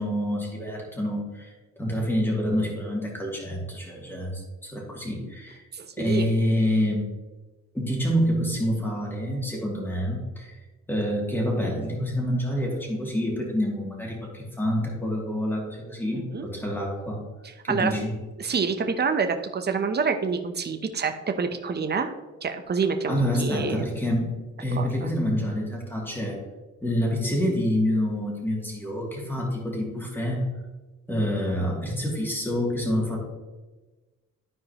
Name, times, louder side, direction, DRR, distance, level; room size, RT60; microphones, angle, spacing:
voice 1, 0.0-5.6 6.0-7.0 7.7-10.6 10.9-17.2 17.6-18.1 23.1-26.4 26.8-30.4 31.1-33.3, equal, 5° left, -2 dB, 2.8 m, -27 dB
voice 2, 5.7-6.3 16.1-16.5 17.7-17.9 18.4-22.1 22.4-23.8 24.7-25.1, right 5 dB, 35° right, 7 dB, 0.9 m, -27 dB
13.5 x 4.7 x 3.1 m, 1.2 s
cardioid pair, 90°, 30 cm